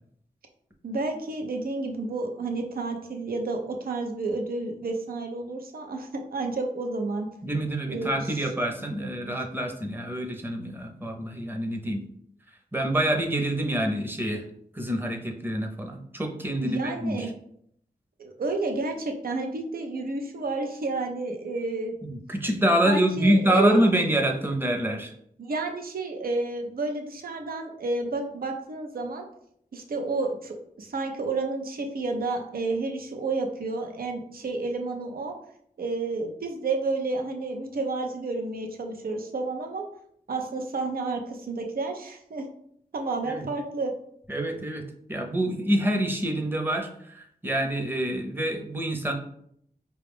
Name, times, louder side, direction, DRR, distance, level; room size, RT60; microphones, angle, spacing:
voice 1, 0.8-7.3 7.9-8.5 16.6-17.3 18.2-22.0 22.8-23.8 25.4-29.2 29.7-35.3 35.8-39.9 40.3-42.4 42.9-43.9, right 3 dB, 80° right, 3 dB, 0.6 m, -30 dB
voice 2, 7.4-12.0 12.7-14.4 14.7-17.3 22.0-25.1 43.3-43.5 44.3-44.8 45.1-49.1, right 1 dB, 15° right, 2 dB, 0.7 m, -26 dB
4.8 x 2.3 x 3.5 m, 0.69 s
wide cardioid pair, 80°, 15 cm